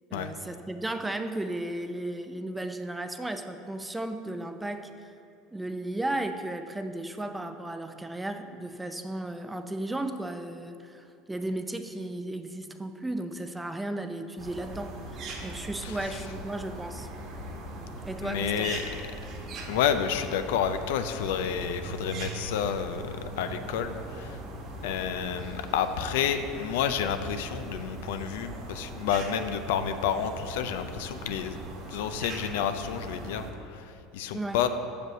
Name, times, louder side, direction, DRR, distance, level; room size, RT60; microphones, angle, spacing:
voice 1, 0.1-4.9 5.5-17.1 18.1-18.7 34.3-34.6, right 1 dB, 10° right, 8 dB, 0.5 m, -35 dB
sound 1, 14.4-33.5, right 1 dB, 50° right, 1.4 m, -40 dB
voice 2, 15.8-16.2 18.2-18.8 19.7-24.4 24.8-31.6 31.9-34.7, left 8 dB, 80° left, 9 dB, 0.4 m, -30 dB
6.3 x 5.0 x 6.6 m, 2.5 s
supercardioid pair, 95°, 0 cm